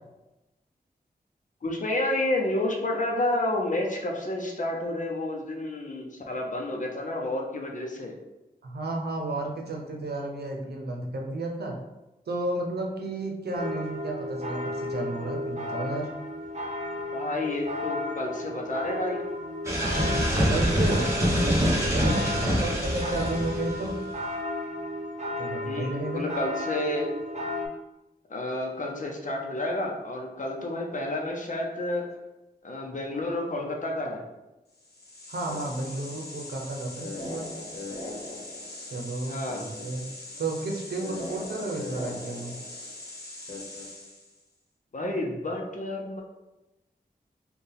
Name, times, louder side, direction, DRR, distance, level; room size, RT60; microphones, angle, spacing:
voice 1, 1.6-8.1 17.1-19.2 22.3-22.8 25.6-27.1 28.3-32.1 32.6-34.2 39.2-39.7 44.9-46.2, left 1 dB, 50° left, 0 dB, 0.7 m, -30 dB
voice 2, 8.6-11.8 12.3-16.1 20.5-24.0 25.4-26.3 35.3-37.5 38.9-40.0 40.4-42.5, right 2 dB, 80° right, 1 dB, 0.7 m, -32 dB
sound 1, 13.5-27.7, left 1 dB, 45° right, 0.7 m, -34 dB
sound 2, 19.6-24.1, equal, 20° right, 1.2 m, -25 dB
sound 3, 34.8-44.4, left 2 dB, 85° left, 1.0 m, -39 dB
4.4 x 2.3 x 3.4 m, 1.0 s
wide cardioid pair, 95°, 16 cm